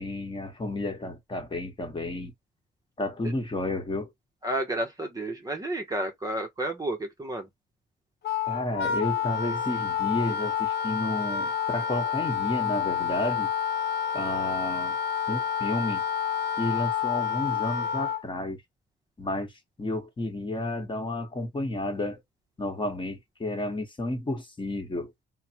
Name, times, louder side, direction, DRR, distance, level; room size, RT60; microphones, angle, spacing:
voice 1, 0.0-2.3 3.0-4.1 8.5-13.5 14.1-14.9 15.3-16.0 16.6-18.6 19.2-19.5 19.8-22.2 22.6-25.1, left 2 dB, 25° left, 1.1 m, -31 dB
voice 2, 4.4-7.5, right 1 dB, 20° right, 0.7 m, -31 dB
Wind instrument woodwind instrument, 8.2-18.2, left 8 dB, 55° left, 0.6 m, -29 dB
3.1 x 2.0 x 2.8 m
cardioid pair, 90°, 20 cm